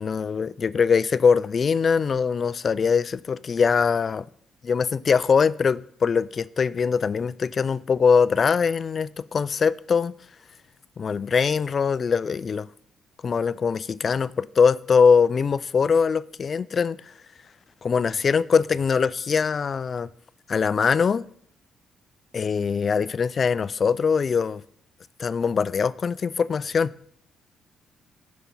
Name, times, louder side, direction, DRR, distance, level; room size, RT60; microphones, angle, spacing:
voice 1, 0.0-4.2 4.6-10.1 11.0-12.7 13.2-17.0 17.8-20.1 20.5-21.2 22.3-24.6 25.2-26.9, left 6 dB, 45° left, 0.3 m, -22 dB
10.5 x 5.2 x 5.6 m
cardioid pair, 90°, 0 cm